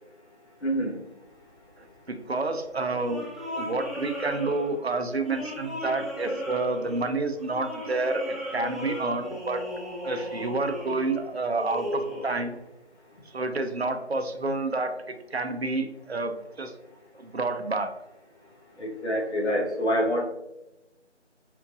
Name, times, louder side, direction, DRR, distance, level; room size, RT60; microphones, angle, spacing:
voice 1, 0.6-1.0 18.8-20.3, equal, 70° left, -2 dB, 1.4 m, -26 dB
voice 2, 1.8-3.2 3.5-9.6 10.0-12.6 13.3-16.7 17.1-17.9, right 3 dB, 60° right, 7 dB, 0.6 m, -29 dB
sound 1, 2.9-12.6, left 1 dB, ahead, 0.5 m, -36 dB
4.6 x 4.4 x 2.5 m, 0.92 s
figure-of-eight pair, 175°, 36 cm